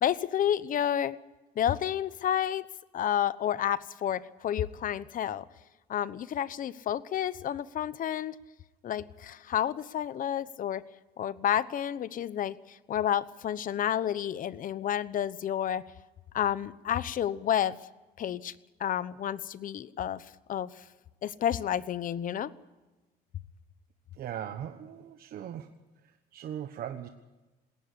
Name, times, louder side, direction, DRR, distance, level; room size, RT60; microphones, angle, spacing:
voice 1, 0.0-1.2 1.6-2.7 2.9-5.4 5.9-8.3 8.8-10.8 11.2-15.8 16.3-17.8 18.2-18.5 18.8-20.7 21.2-22.5, left 10 dB, 55° left, 16 dB, 1.0 m, -30 dB
voice 2, 24.1-25.7 26.0-27.1, right 10 dB, 60° right, 7 dB, 1.3 m, -39 dB
20.5 x 18.0 x 8.4 m, 1.1 s
cardioid pair, 110°, 17 cm